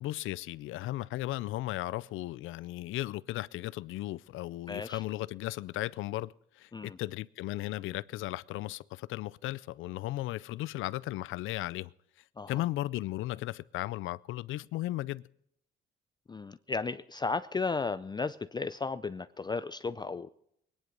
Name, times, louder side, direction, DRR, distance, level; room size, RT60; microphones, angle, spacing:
voice 1, 0.0-11.9 12.5-15.2, left 16 dB, 85° left, 0.5 m, -36 dB
voice 2, 4.7-5.0 6.7-7.0 12.4-12.5 16.3-20.3, left 4 dB, 20° left, 0.5 m, -34 dB
21.0 x 10.0 x 5.2 m
cardioid pair, 90°, 20 cm